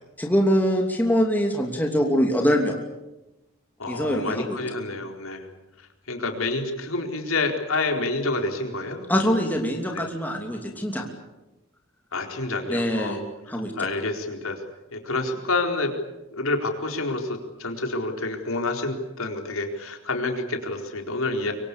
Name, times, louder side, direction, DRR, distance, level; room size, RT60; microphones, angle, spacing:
voice 1, 0.2-2.8 3.9-4.6 9.1-11.0 12.7-13.2 13.5-13.7, equal, 10° left, 2 dB, 2.9 m, -23 dB
voice 2, 3.8-5.5 6.1-9.0 9.3-9.4 9.9-10.0 12.1-13.2 13.5-14.6 14.9-15.9 16.3-21.5, left 2 dB, 90° left, 4 dB, 4.3 m, -28 dB
25.0 x 24.5 x 8.5 m, 1.0 s
head